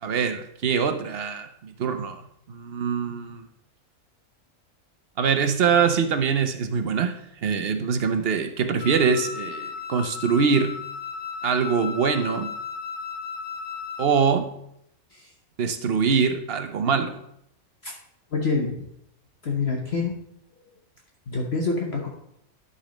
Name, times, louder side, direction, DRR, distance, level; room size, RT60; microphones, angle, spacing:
voice 1, 0.0-2.2 2.5-3.4 5.2-7.1 7.4-10.7 11.4-12.5 14.0-14.5 15.6-17.2, right 6 dB, 50° right, 8 dB, 0.9 m, -23 dB
Wind instrument woodwind instrument, 8.8-14.2, left 6 dB, 80° left, 1.4 m, -35 dB
voice 2, 18.3-18.8 19.4-20.2 21.3-22.1, left 4 dB, 50° left, 0 dB, 1.3 m, -26 dB
12.0 x 4.2 x 5.1 m, 0.75 s
omnidirectional pair, 1.5 m